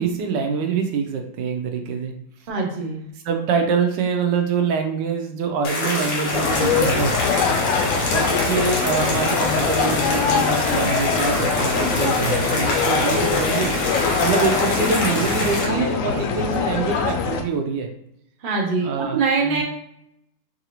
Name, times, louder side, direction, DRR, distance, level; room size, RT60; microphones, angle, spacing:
voice 1, 0.0-2.1 3.2-7.2 8.1-17.9 18.8-19.6, right 5 dB, 75° right, 4 dB, 1.2 m, -25 dB
voice 2, 2.5-3.0 18.4-19.6, right 4 dB, 45° right, -1 dB, 0.6 m, -23 dB
sound 1, 5.6-15.6, left 1 dB, 65° left, 1.6 m, -25 dB
sound 2, 6.3-17.4, left 5 dB, 90° left, 0.7 m, -23 dB
4.7 x 2.6 x 2.9 m, 0.76 s
omnidirectional pair, 2.0 m